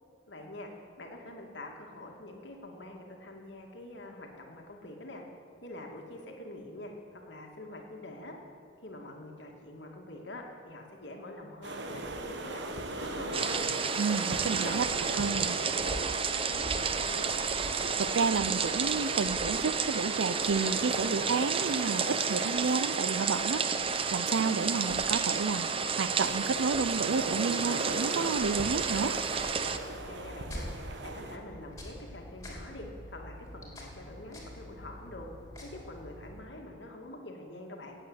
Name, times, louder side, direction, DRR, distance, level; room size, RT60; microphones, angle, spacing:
voice 1, 0.3-0.7 1.0-5.2 5.6-8.4 8.8-13.6 14.1-14.7 15.0-17.3 30.0-30.7 31.0-35.3 35.6-38.0, left 1 dB, 65° left, 1 dB, 2.3 m, -45 dB
sound 1, 11.6-31.4, right 2 dB, 65° right, 1.3 m, -39 dB
sound 2, 13.3-29.8, right 6 dB, 30° right, 0.7 m, -31 dB
voice 2, 14.0-14.9 15.1-15.5 18.0-23.6 24.1-25.7 26.0-29.2, right 5 dB, 90° right, 16 dB, 0.5 m, -31 dB
sound 3, 28.3-36.4, equal, 15° left, 3.2 m, -46 dB
17.0 x 8.6 x 8.0 m, 2.4 s
head